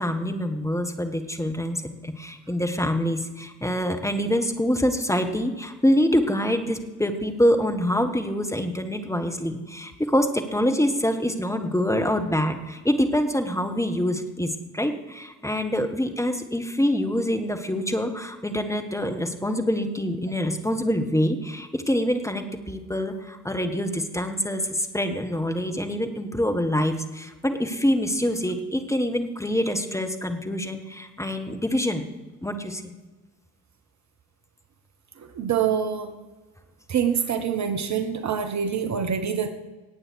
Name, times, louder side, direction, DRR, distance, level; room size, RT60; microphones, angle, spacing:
voice 1, 0.0-32.1 32.4-32.8, equal, 5° left, 5 dB, 1.6 m, -25 dB
voice 2, 35.4-36.2 36.9-39.5, right 7 dB, 40° right, 8 dB, 1.1 m, -25 dB
18.5 x 8.7 x 4.8 m, 1.2 s
figure-of-eight pair, 45°, 43 cm